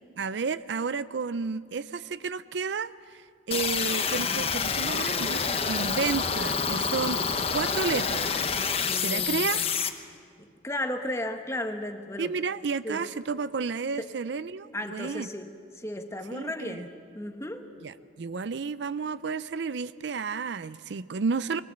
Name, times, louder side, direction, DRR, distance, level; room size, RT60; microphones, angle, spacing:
voice 1, 0.2-7.2 7.5-8.3 9.0-9.6 12.2-15.3 16.3-16.8 17.8-21.6, right 5 dB, 65° right, 16 dB, 0.5 m, -31 dB
sound 1, 3.5-9.9, left 6 dB, 30° left, 1.0 m, -28 dB
voice 2, 8.9-9.7 10.4-12.3 12.8-13.0 14.0-14.1 14.7-17.7, left 1 dB, 15° left, 6 dB, 1.2 m, -35 dB
23.0 x 19.0 x 8.0 m, 2.1 s
head